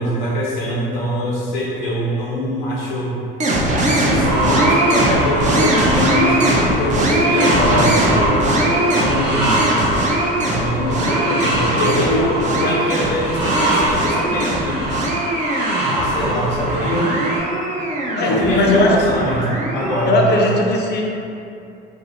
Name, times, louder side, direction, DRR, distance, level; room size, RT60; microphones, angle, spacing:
voice 1, 0.0-3.2 3.8-8.3 8.9-9.6 10.4-14.8 15.8-17.1 18.3-20.5, equal, 80° left, -5 dB, 0.6 m, -23 dB
sound 1, 3.4-20.4, right 1 dB, 25° right, 0.5 m, -21 dB
sound 2, 4.2-17.4, right 1 dB, 70° right, 0.9 m, -23 dB
sound 3, 6.1-11.2, left 3 dB, 85° right, 1.1 m, -30 dB
voice 2, 10.9-13.1 17.8-19.0 20.1-21.0, left 1 dB, 35° left, -1 dB, 0.5 m, -20 dB
2.6 x 2.0 x 3.0 m, 2.6 s
hypercardioid pair, 60°, 29 cm